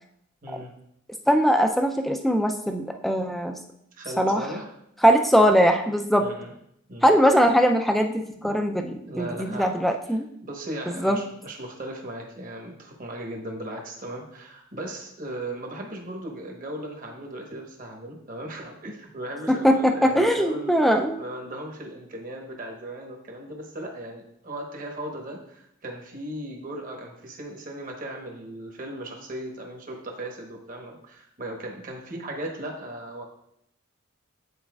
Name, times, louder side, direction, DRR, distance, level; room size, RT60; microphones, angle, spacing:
voice 1, 1.3-3.6 4.2-4.5 5.0-6.3 7.0-10.3 10.9-11.2 19.5-21.2, equal, ahead, 4 dB, 0.3 m, -21 dB
voice 2, 3.9-4.7 6.2-6.5 6.9-7.1 9.1-9.7 10.4-20.8 21.2-33.2, right 1 dB, 40° right, 1 dB, 1.1 m, -37 dB
9.7 x 4.2 x 2.3 m, 0.75 s
head